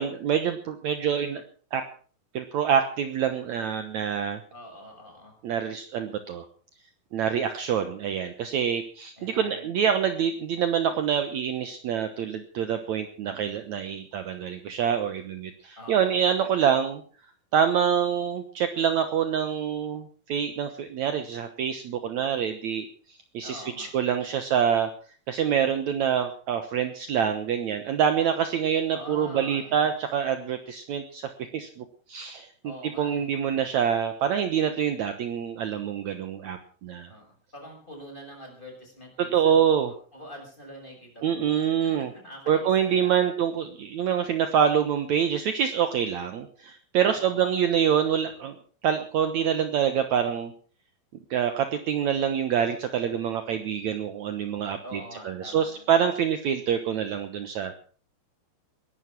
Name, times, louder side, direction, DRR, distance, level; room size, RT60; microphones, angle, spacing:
voice 1, 0.0-1.4 1.7-1.8 2.3-4.4 5.4-6.4 7.1-17.0 17.5-22.9 23.3-24.9 25.3-37.1 39.2-39.9 41.2-42.1 42.5-48.6 48.8-50.5 51.3-57.8, right 8 dB, 75° right, 8 dB, 1.7 m, -26 dB
voice 2, 4.5-5.3 9.2-9.7 15.7-16.1 23.4-23.9 28.9-29.8 32.6-33.2 37.0-43.3 47.0-47.4 54.8-55.9, left 1 dB, 10° left, 0 dB, 6.6 m, -45 dB
21.0 x 11.5 x 5.9 m, 0.42 s
omnidirectional pair, 5.0 m